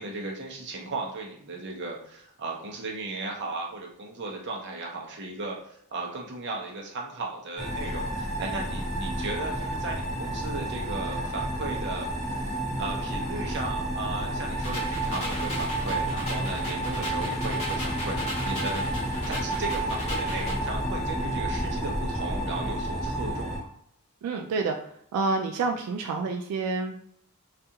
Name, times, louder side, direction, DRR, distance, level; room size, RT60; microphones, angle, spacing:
voice 1, 0.0-18.9 19.3-23.7, right 2 dB, 50° right, -1 dB, 0.6 m, -36 dB
sound 1, 7.6-23.6, right 1 dB, ahead, 0.5 m, -30 dB
sound 2, 14.6-20.6, left 1 dB, 30° left, 0.8 m, -37 dB
voice 2, 24.2-26.9, right 3 dB, 90° right, 3 dB, 0.3 m, -28 dB
2.4 x 2.3 x 2.7 m, 0.70 s
head